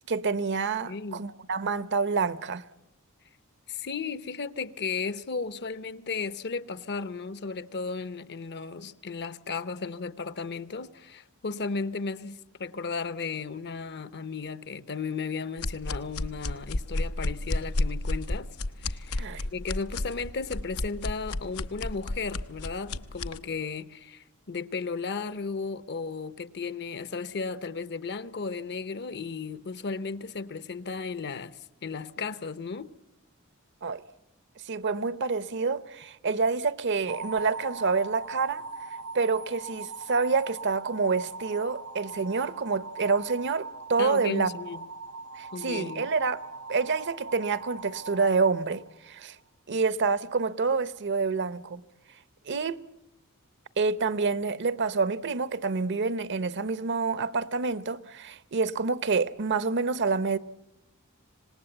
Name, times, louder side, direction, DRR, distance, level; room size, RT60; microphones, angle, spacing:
voice 1, 0.1-2.6 19.2-19.4 33.8-34.0 34.6-38.6 39.1-44.6 45.4-46.4 46.7-49.4 49.7-51.8 52.5-52.8 53.8-60.4, right 4 dB, 55° right, 0.8 m, -27 dB
voice 2, 0.8-1.2 3.7-18.5 18.8-19.3 19.5-32.9 44.0-44.8 45.5-46.1, left 4 dB, 50° left, 0.8 m, -35 dB
sound 1, 15.6-23.4, left 2 dB, 90° left, 0.9 m, -31 dB
sound 2, 37.1-49.2, right 3 dB, 75° right, 1.0 m, -41 dB
26.0 x 19.5 x 7.9 m
head